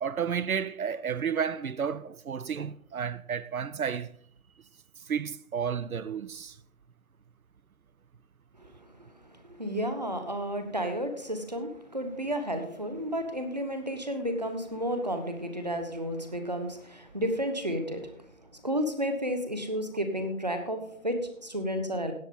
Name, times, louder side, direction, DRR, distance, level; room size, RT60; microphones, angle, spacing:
voice 1, 0.0-4.1 5.1-6.6, right 7 dB, 85° right, 0.6 m, -31 dB
voice 2, 9.4-18.1 18.5-22.1, equal, 30° right, 1.2 m, -32 dB
18.0 x 7.2 x 3.8 m
figure-of-eight pair, 175°, 41 cm